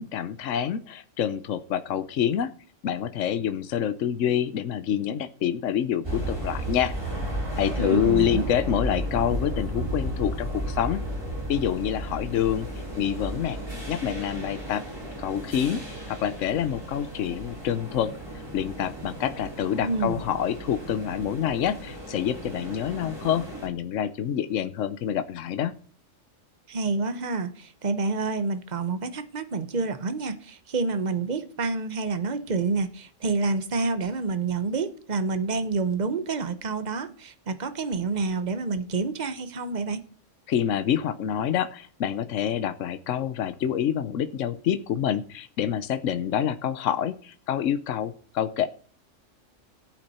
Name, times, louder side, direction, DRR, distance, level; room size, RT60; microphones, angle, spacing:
voice 1, 0.0-2.5 2.8-6.9 7.6-11.0 11.5-12.7 13.0-13.6 13.9-14.8 15.2-15.8 16.1-18.1 18.5-25.7 40.5-48.7, left 9 dB, 75° left, 1.1 m, -27 dB
sound 1, 6.0-23.7, right 1 dB, 20° right, 5.2 m, -34 dB
voice 2, 7.8-8.5 19.8-20.2 26.7-40.0, right 4 dB, 35° right, 1.1 m, -28 dB
14.5 x 8.4 x 4.3 m
omnidirectional pair, 1.3 m